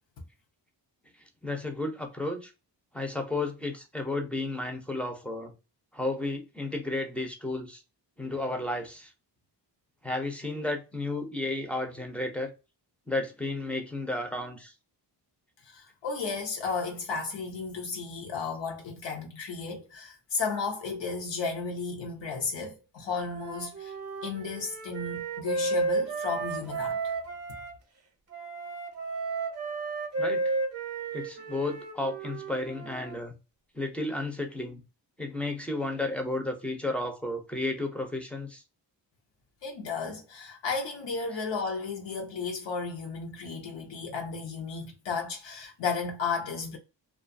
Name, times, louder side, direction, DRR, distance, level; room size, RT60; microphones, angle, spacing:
voice 1, 1.4-2.5 2.9-5.5 5.9-7.8 8.2-9.1 10.0-12.5 13.1-14.7 30.2-30.5 31.1-33.3 33.7-34.8 35.2-38.6, left 2 dB, 5° left, 0.4 m, -33 dB
voice 2, 15.6-23.9 24.2-27.0 39.6-46.8, left 4 dB, 85° left, 0.7 m, -34 dB
Wind instrument woodwind instrument, 23.1-27.7 28.3-33.2, right 3 dB, 35° right, 0.6 m, -33 dB
2.5 x 2.3 x 2.5 m
wide cardioid pair, 170°, 43 cm